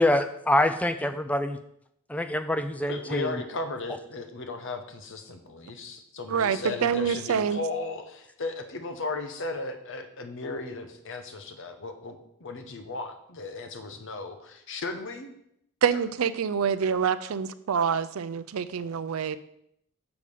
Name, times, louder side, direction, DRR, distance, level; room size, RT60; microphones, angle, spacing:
voice 1, 0.0-1.6 2.1-3.4, left 1 dB, 5° left, 9 dB, 0.4 m, -25 dB
voice 2, 2.9-15.3, left 3 dB, 60° left, 6 dB, 0.9 m, -36 dB
voice 3, 6.3-7.6 15.8-19.4, right 7 dB, 70° right, 14 dB, 0.4 m, -26 dB
7.0 x 4.9 x 5.4 m, 0.74 s
head